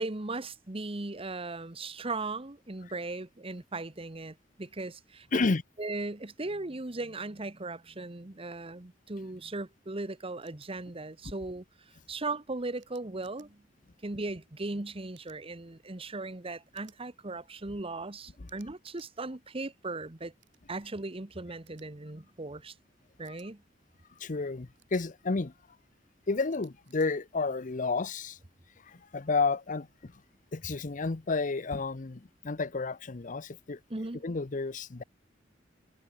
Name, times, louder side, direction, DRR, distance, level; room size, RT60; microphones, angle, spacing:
voice 1, 0.0-5.5 5.8-11.6 12.1-13.6 14.0-20.3 20.7-22.7 23.2-23.6 33.9-34.2, right 2 dB, 30° right, 1.2 m, -38 dB
voice 2, 5.3-5.6 18.4-18.5 23.3-23.4 24.2-25.5 26.3-28.4 28.8-30.2 30.5-33.8 34.2-35.0, left 3 dB, 45° left, 0.7 m, -31 dB
sound 1, 10.4-10.7 12.8-13.5 15.1-15.4 16.7-17.0 18.5-19.1 20.4-20.6 21.7-21.9 23.2-23.5 24.7-25.0 26.5-27.1, right 12 dB, 85° right, 4.3 m, -62 dB
head